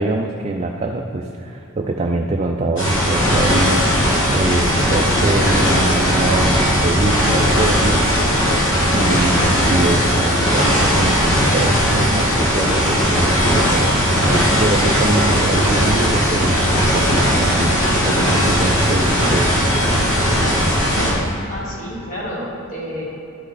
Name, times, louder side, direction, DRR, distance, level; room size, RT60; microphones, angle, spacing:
voice 1, 0.0-3.9 4.2-8.3 8.9-16.6 16.9-17.8 18.0-19.6, right 2 dB, 30° right, 1 dB, 0.4 m, -23 dB
sound 1, 2.8-21.1, equal, 60° left, 1.9 m, -17 dB
voice 2, 21.5-23.1, equal, 35° left, -6 dB, 1.5 m, -29 dB
11.5 x 5.2 x 4.1 m, 2.8 s
head